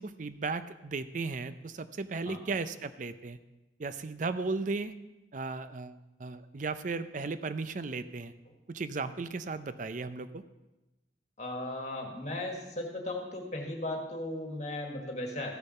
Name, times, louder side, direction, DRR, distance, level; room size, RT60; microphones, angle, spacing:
voice 1, 0.0-3.4 3.8-4.9 5.3-8.3 8.7-10.4, right 3 dB, 45° right, 12 dB, 0.5 m, -35 dB
voice 2, 11.4-15.6, left 1 dB, 40° left, 1 dB, 1.6 m, -36 dB
14.5 x 6.8 x 5.5 m, 1.0 s
head